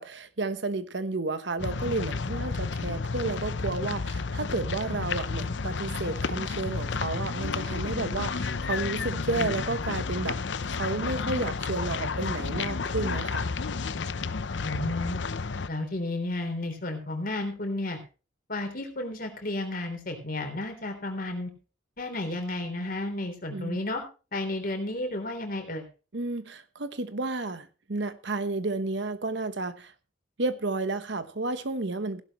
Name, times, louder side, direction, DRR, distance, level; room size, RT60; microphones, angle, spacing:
voice 1, 0.0-10.4 10.7-13.5 23.5-23.8 26.1-29.9 30.4-32.2, right 3 dB, 60° right, 1.1 m, -32 dB
sound 1, 1.6-15.7, left 4 dB, 65° left, 0.7 m, -31 dB
voice 2, 14.6-15.2 15.7-18.0 18.5-21.5 22.0-24.0 24.3-25.9, left 2 dB, 45° left, 3.5 m, -32 dB
16.0 x 11.5 x 3.1 m
head